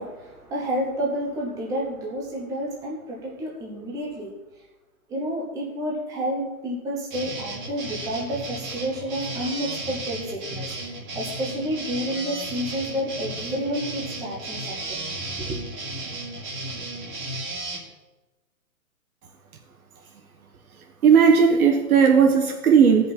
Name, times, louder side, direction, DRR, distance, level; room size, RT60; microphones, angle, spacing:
voice 1, 0.0-4.3 5.1-15.1 15.4-15.6, equal, 10° right, -3 dB, 0.9 m, -30 dB
sound 1, 7.1-17.8, right 2 dB, 35° right, 1.9 m, -34 dB
voice 2, 21.0-23.1, right 6 dB, 85° right, 3 dB, 1.3 m, -16 dB
16.0 x 5.5 x 4.4 m, 1.1 s
hypercardioid pair, 160°, 42 cm